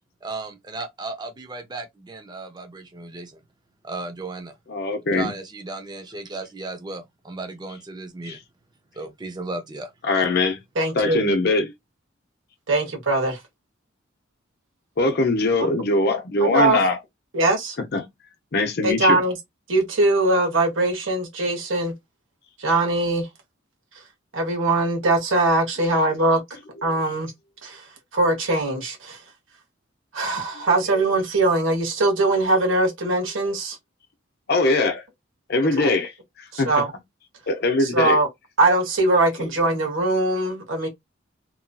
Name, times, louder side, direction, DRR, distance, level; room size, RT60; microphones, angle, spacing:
voice 1, 0.2-3.4 3.8-4.5 5.1-8.4 8.9-9.9, right 3 dB, 20° right, 0.6 m, -35 dB
voice 2, 4.7-5.3 8.3-8.4 10.1-10.6 10.9-11.7 15.0-17.0 17.9-18.1 18.5-19.2 34.5-35.0 35.5-36.1 36.4-36.8 37.5-38.2, left 2 dB, 55° left, 0.7 m, -21 dB
voice 3, 10.7-11.2 12.7-13.4 15.6-15.7 16.4-16.8 17.3-17.8 18.8-19.4 19.7-21.9 22.6-23.3 24.3-26.4 26.8-27.3 27.6-27.8 28.1-29.2 30.1-33.8 35.8-35.9 36.5-36.9 37.8-38.3 38.6-40.9, right 2 dB, 80° right, 1.1 m, -21 dB
2.9 x 2.6 x 2.2 m
head